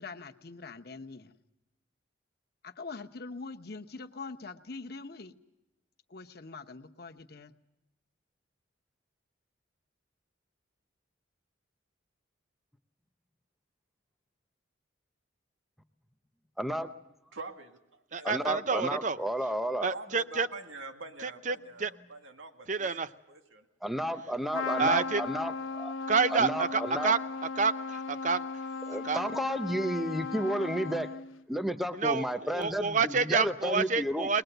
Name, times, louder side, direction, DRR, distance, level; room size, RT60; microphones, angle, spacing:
voice 1, 0.0-1.4 2.6-5.3 6.1-7.5, left 3 dB, 50° left, 6 dB, 1.0 m, -43 dB
voice 2, 16.6-16.9 18.2-19.9 23.8-25.9 26.3-27.1 28.9-31.1 31.5-34.3, equal, ahead, 8 dB, 0.7 m, -32 dB
voice 3, 17.3-18.8 19.9-23.0 23.3-23.6, right 3 dB, 80° right, 6 dB, 2.0 m, -45 dB
voice 4, 18.1-19.2 19.8-20.5 21.2-21.9 22.7-23.1 24.8-25.2 26.1-27.2 27.6-28.4 29.0-29.2 31.9-32.3 32.5-34.4, right 5 dB, 40° right, 13 dB, 0.7 m, -28 dB
Trumpet, 24.5-31.4, left 4 dB, 85° left, 0.9 m, -37 dB
22.5 x 21.0 x 8.0 m, 0.95 s
head